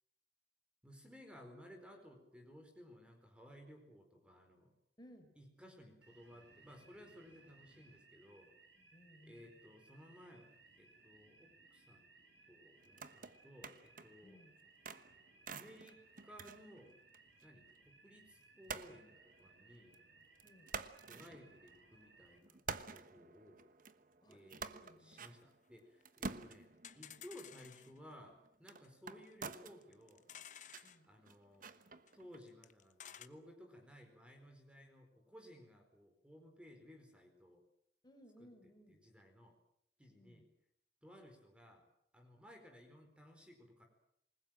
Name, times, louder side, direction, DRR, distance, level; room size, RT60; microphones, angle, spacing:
voice 1, 0.8-4.7 5.4-8.5 9.2-10.5 10.8-12.1 12.5-14.4 15.5-16.9 17.4-19.9 21.0-22.6 22.9-23.6 24.3-30.2 31.1-31.7 32.1-37.6 38.9-39.5 40.0-40.4 41.0-41.8 42.1-43.9, equal, 5° right, 4 dB, 4.6 m, -58 dB
voice 2, 5.0-5.3 8.8-9.7 14.2-14.5 20.4-20.7 24.2-25.3 29.0-29.2 30.8-31.1 38.0-39.0 40.1-40.5, equal, 25° left, 5 dB, 4.8 m, -62 dB
sound 1, 6.0-22.4, right 3 dB, 75° right, 6.1 m, -65 dB
sound 2, 12.8-14.2 14.6-17.4 17.7-17.8 18.7-20.0 20.4-22.0 22.4-32.4, right 4 dB, 50° right, 1.3 m, -50 dB
sound 3, 24.8-24.9 25.1-25.2 25.4-25.5 26.0-26.1 26.3-26.4 26.8-28.0 28.8-28.9 29.2-29.3 29.8-31.0 32.1-32.2 32.4-33.3, left 10 dB, 45° left, 1.1 m, -54 dB
27.5 x 20.5 x 7.6 m, 0.72 s
head